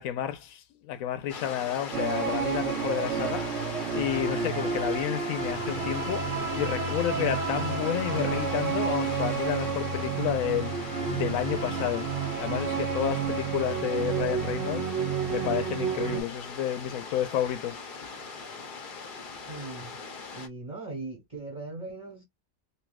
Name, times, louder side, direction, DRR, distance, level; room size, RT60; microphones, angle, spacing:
voice 1, 0.0-3.7 3.9-12.1 12.4-14.9 15.3-17.8, left 11 dB, 75° left, 1.1 m, -31 dB
sound 1, 1.3-20.5, left 4 dB, 50° left, 0.6 m, -40 dB
sound 2, 1.9-16.2, right 6 dB, 55° right, 0.9 m, -30 dB
voice 2, 19.5-19.9 20.3-22.2, right 3 dB, 25° right, 1.3 m, -39 dB
3.4 x 2.7 x 2.3 m
omnidirectional pair, 1.5 m